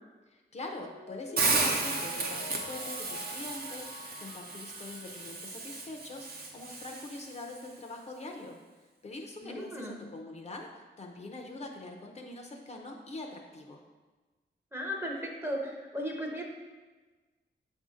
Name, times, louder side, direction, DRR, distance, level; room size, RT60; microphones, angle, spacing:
voice 1, 0.3-8.6 9.0-13.8, left 2 dB, 40° left, 2 dB, 0.6 m, -43 dB
Mallet percussion, 0.6-5.5, left 3 dB, 70° left, 0.9 m, -47 dB
Hiss, 1.4-7.4, right 3 dB, 55° right, 0.8 m, -34 dB
voice 2, 9.4-10.0 14.7-16.4, equal, 10° right, -1 dB, 0.7 m, -36 dB
7.1 x 2.7 x 4.9 m, 1.3 s
wide cardioid pair, 165°, 18 cm